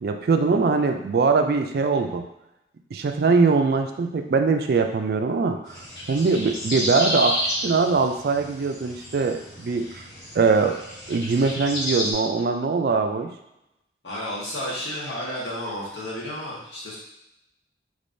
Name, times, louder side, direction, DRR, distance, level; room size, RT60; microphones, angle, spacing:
voice 1, 0.0-2.2 2.9-10.0 10.3-10.8 11.1-13.3, right 4 dB, 55° right, 5 dB, 0.3 m, -22 dB
sound 1, 5.7-12.1, equal, 65° left, 1.2 m, -31 dB
voice 2, 14.0-17.0, left 1 dB, 85° left, -6 dB, 1.4 m, -32 dB
3.6 x 3.2 x 2.6 m, 0.86 s
head